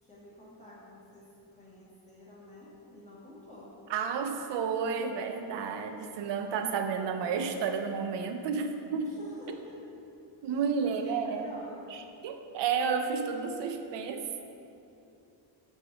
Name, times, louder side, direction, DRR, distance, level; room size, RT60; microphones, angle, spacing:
voice 1, 0.0-3.8 8.9-9.8 10.3-12.0, left 1 dB, 15° left, -8 dB, 1.4 m, -50 dB
voice 2, 3.9-9.1 10.4-11.5 12.2-14.4, right 6 dB, 65° right, 6 dB, 0.6 m, -31 dB
9.2 x 3.5 x 5.0 m, 2.7 s
wide cardioid pair, 145°, 46 cm